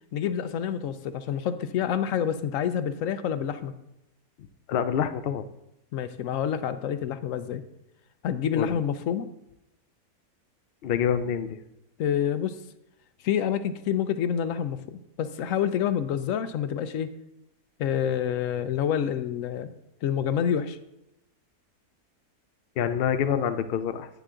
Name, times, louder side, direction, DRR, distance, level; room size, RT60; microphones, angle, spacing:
voice 1, 0.1-3.7 5.9-7.6 8.2-9.3 12.0-12.6 13.2-17.1 17.8-19.7 20.0-20.8, left 9 dB, 65° left, 11 dB, 0.9 m, -28 dB
voice 2, 4.7-5.4 8.5-8.8 10.8-11.6 22.8-24.1, left 8 dB, 85° left, 10 dB, 0.5 m, -26 dB
9.2 x 6.8 x 3.7 m, 0.88 s
omnidirectional pair, 1.7 m